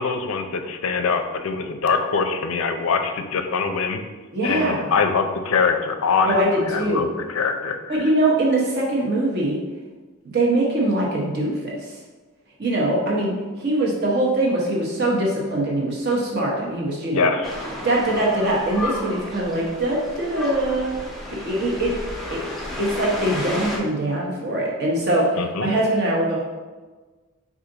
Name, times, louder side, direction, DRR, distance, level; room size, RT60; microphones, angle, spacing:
voice 1, 0.0-4.0 4.4-8.1 17.1-17.5 25.4-25.7, left 5 dB, 65° left, 7 dB, 0.4 m, -23 dB
voice 2, 4.3-4.9 6.3-7.1 7.9-9.6 10.2-11.9 12.6-17.3 17.8-20.9 21.4-21.9 22.3-22.4 22.8-26.4, right 1 dB, 50° right, -3 dB, 1.0 m, -22 dB
sound 1, 17.4-23.8, left 1 dB, ahead, 0.5 m, -32 dB
4.9 x 2.5 x 3.8 m, 1.3 s
head